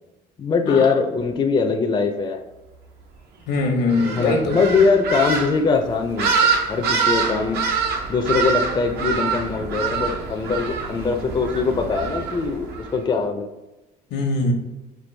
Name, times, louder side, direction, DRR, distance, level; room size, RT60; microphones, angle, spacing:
voice 1, 0.4-2.4 4.1-7.6 8.1-13.5, left 4 dB, 25° left, 4 dB, 0.4 m, -22 dB
voice 2, 3.5-4.6 14.1-14.5, left 2 dB, 85° left, 3 dB, 1.0 m, -21 dB
sound 1, 3.9-13.0, right 5 dB, 75° right, 0.8 m, -25 dB
4.6 x 2.3 x 3.3 m, 1.1 s
cardioid pair, 110°, 17 cm